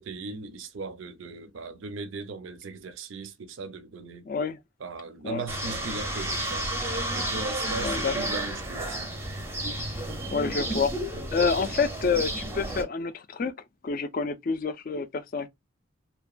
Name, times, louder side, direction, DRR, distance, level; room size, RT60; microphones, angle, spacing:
voice 1, 0.0-4.3 4.8-9.0, right 3 dB, 70° right, 0.5 m, -38 dB
voice 2, 4.3-4.6 5.2-5.4 7.8-8.1 10.3-10.9 11.3-13.5 13.8-15.5, left 5 dB, 45° left, 0.3 m, -28 dB
sound 1, 5.5-12.8, right 1 dB, 10° right, 0.5 m, -31 dB
2.8 x 2.2 x 2.3 m
head